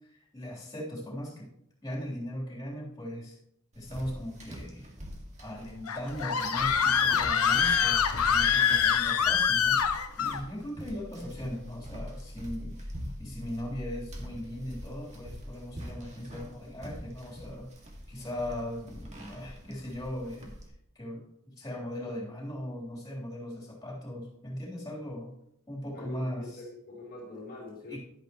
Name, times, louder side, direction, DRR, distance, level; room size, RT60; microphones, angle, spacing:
voice 1, 0.0-1.5 1.8-3.4 3.7-4.8 5.4-9.8 10.2-12.9 13.2-17.7 18.1-20.5 20.9-25.3 25.7-26.6 27.9-28.0, left 1 dB, 15° left, -4 dB, 3.4 m, -38 dB
sound 1, 3.7-20.7, equal, 30° right, 1.9 m, -45 dB
Screaming, 5.9-10.4, left 7 dB, 85° left, 0.9 m, -25 dB
voice 2, 25.9-28.0, left 1 dB, 45° left, -3 dB, 2.1 m, -43 dB
11.0 x 10.0 x 3.0 m, 0.77 s
head